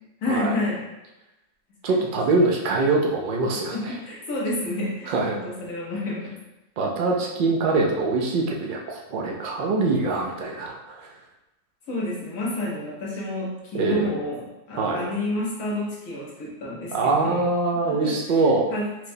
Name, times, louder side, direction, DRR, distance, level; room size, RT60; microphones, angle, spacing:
voice 1, 0.2-0.8 3.7-6.4 9.3-9.4 11.9-17.4 17.8-18.2 18.7-19.1, left 1 dB, 75° left, -5 dB, 1.3 m, -29 dB
voice 2, 1.8-4.0 5.1-5.4 6.8-11.1 13.7-14.1 14.8-15.0 16.9-18.7, right 3 dB, 75° right, -1 dB, 0.4 m, -23 dB
4.4 x 2.1 x 2.7 m, 0.97 s
omnidirectional pair, 1.4 m